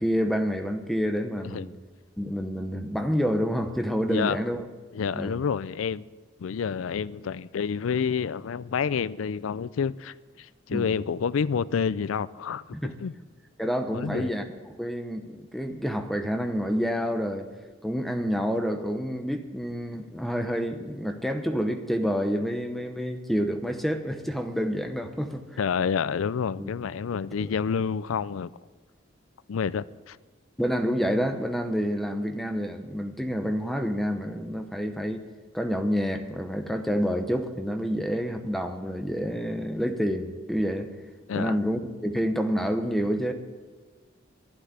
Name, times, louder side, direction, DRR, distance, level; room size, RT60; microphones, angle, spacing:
voice 1, 0.0-1.7 2.2-4.6 5.1-5.4 10.7-10.9 12.7-13.0 13.6-14.5 14.8-17.5 17.8-25.6 26.6-26.7 27.4-27.5 30.6-35.2 35.5-40.9 41.3-43.3, equal, ahead, 0.8 m, -28 dB
voice 2, 4.9-6.0 6.4-12.6 13.0-13.1 13.9-14.3 25.6-28.5 29.5-30.2 41.3-41.6, left 6 dB, 90° left, 0.4 m, -28 dB
12.0 x 11.5 x 8.0 m
head